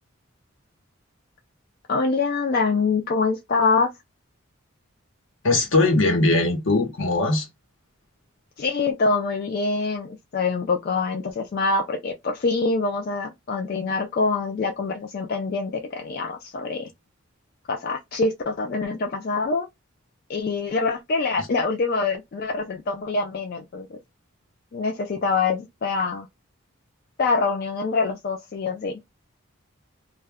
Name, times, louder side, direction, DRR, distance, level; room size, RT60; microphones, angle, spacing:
voice 1, 1.9-3.9 8.6-16.9 17.7-19.7 20.3-24.0 24.7-26.3 27.2-29.0, left 4 dB, 45° left, 0.3 m, -25 dB
voice 2, 5.4-7.5 21.4-21.5, left 2 dB, 70° left, 0.9 m, -20 dB
2.2 x 2.1 x 3.4 m
head